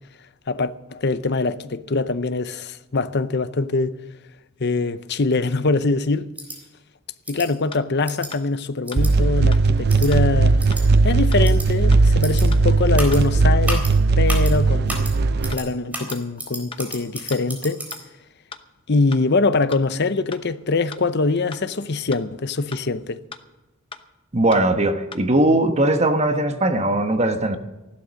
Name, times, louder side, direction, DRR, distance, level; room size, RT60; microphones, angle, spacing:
voice 1, 0.5-4.0 4.6-6.3 7.3-10.6 11.0-13.9 14.2-15.1 15.5-17.8 18.9-23.2, left 3 dB, 55° left, 0.7 m, -23 dB
sound 1, 6.4-6.6 7.2-7.5 8.1-8.3 8.9-9.1 9.9-10.1 10.6-10.8 11.4-11.7 12.2-12.4 12.9-13.2 13.6-13.9 14.3-14.5 14.9-15.1 15.4-15.6 15.9-18.0, right 1 dB, 5° right, 3.9 m, -31 dB
sound 2, 7.7-7.8 8.3-8.4 8.9-9.0 9.5-9.6 10.1-10.2 10.7-10.8 11.3-11.4 11.9-12.0 12.5-12.6 13.1-13.2 13.7-13.8 14.3-14.4 14.9-15.0 15.5-15.6 16.1-16.2 16.7-16.8 17.3-17.4 17.9-18.0 18.5-18.6 19.1-19.2 19.7-19.8 20.3-20.4 20.9-21.0 21.5-21.6 22.1-22.2 22.7-22.8 23.3-23.4 23.9-24.0 24.5-24.6 25.1-25.2, left 5 dB, 25° left, 0.9 m, -37 dB
sound 3, 9.0-15.5, right 3 dB, 50° right, 0.5 m, -18 dB
voice 2, 24.3-27.6, right 1 dB, 30° right, 1.2 m, -19 dB
15.5 x 12.0 x 6.5 m
head